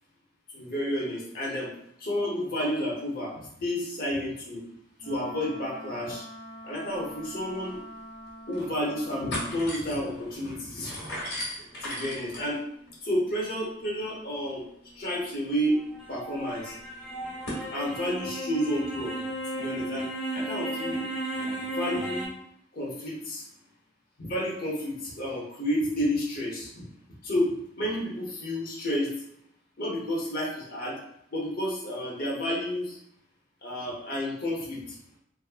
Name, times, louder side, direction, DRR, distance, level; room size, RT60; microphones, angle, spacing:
voice 1, 0.5-1.7 2.0-4.6 5.0-6.3 6.6-7.8 8.5-11.0 11.8-12.6 13.0-14.6 14.9-15.8 16.1-16.7 17.7-19.1 19.6-20.1 20.3-21.1 21.7-22.3 22.7-23.4 24.2-26.8 27.2-29.1 29.8-31.0 31.3-33.0 33.6-35.0, equal, 50° left, -4 dB, 0.9 m, -30 dB
Wind instrument woodwind instrument, 5.0-9.8, equal, 65° right, 1.5 m, -45 dB
sound 1, 7.7-7.8 8.3-8.7 9.0-17.7, left 1 dB, 75° left, 1.3 m, -40 dB
sound 2, 15.7-22.3, right 1 dB, 5° right, 0.6 m, -34 dB
3.5 x 2.1 x 2.4 m, 0.72 s
head